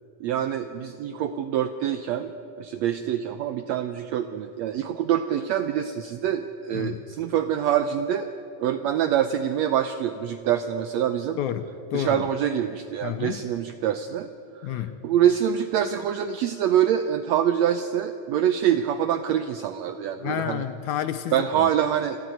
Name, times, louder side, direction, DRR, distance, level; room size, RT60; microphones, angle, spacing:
voice 1, 0.2-2.3 2.6-8.3 8.6-11.4 11.9-14.3 14.6-20.6 21.3-22.2, right 10 dB, 80° right, 10 dB, 1.5 m, -25 dB
voice 2, 6.7-7.0 11.4-12.3 13.0-13.5 14.6-15.0 20.2-21.7, left 11 dB, 75° left, 11 dB, 1.9 m, -30 dB
27.0 x 13.5 x 9.1 m, 2.7 s
omnidirectional pair, 3.9 m